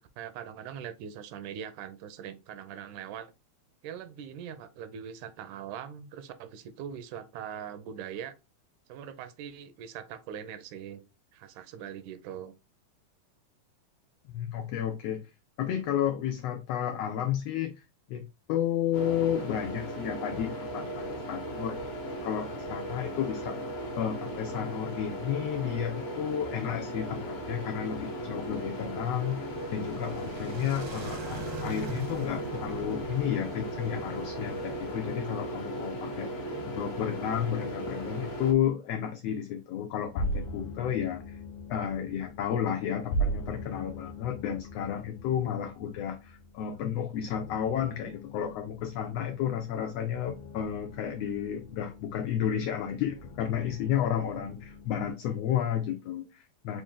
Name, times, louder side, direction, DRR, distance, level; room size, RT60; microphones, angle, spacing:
voice 1, 0.0-3.3 3.8-8.3 8.9-11.0 11.3-12.5 36.3-36.7, right 8 dB, 85° right, 2.1 m, -42 dB
voice 2, 14.3-15.3 15.6-21.8 22.2-23.6 24.0-36.4 36.7-41.4 41.7-56.8, left 9 dB, 90° left, 1.4 m, -32 dB
sound 1, 18.9-38.5, right 1 dB, 55° left, 1.3 m, -37 dB
sound 2, 27.2-35.0, right 3 dB, 65° right, 1.2 m, -44 dB
sound 3, 40.0-55.1, right 1 dB, 75° left, 1.7 m, -40 dB
5.3 x 2.6 x 3.6 m
omnidirectional pair, 3.4 m